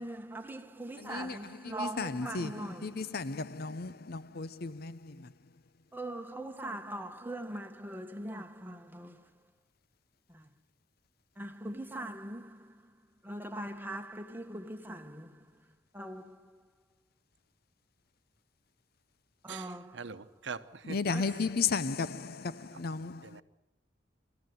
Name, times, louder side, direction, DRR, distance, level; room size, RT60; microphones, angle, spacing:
voice 1, 0.0-3.2 5.1-5.2 5.9-9.4 10.3-10.5 11.4-16.7 19.4-20.3 21.1-21.4, right 1 dB, 10° right, 1.3 m, -42 dB
voice 2, 1.0-5.3 20.8-23.4, left 4 dB, 55° left, 0.7 m, -34 dB
voice 3, 19.5-21.0 23.2-23.4, right 5 dB, 75° right, 1.0 m, -43 dB
25.5 x 14.0 x 9.4 m
head